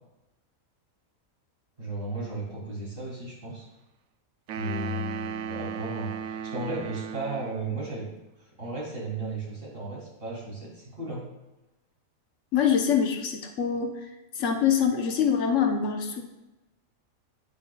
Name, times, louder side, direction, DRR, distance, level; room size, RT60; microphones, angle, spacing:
voice 1, 1.8-3.7 4.5-8.1 8.4-11.3, right 2 dB, 40° right, -5 dB, 3.4 m, -35 dB
sound 1, 4.5-7.8, right 8 dB, 65° right, 0.7 m, -36 dB
voice 2, 12.5-13.9 14.4-16.2, left 7 dB, 65° left, 4 dB, 1.3 m, -24 dB
16.0 x 6.0 x 2.4 m, 1.0 s
omnidirectional pair, 1.5 m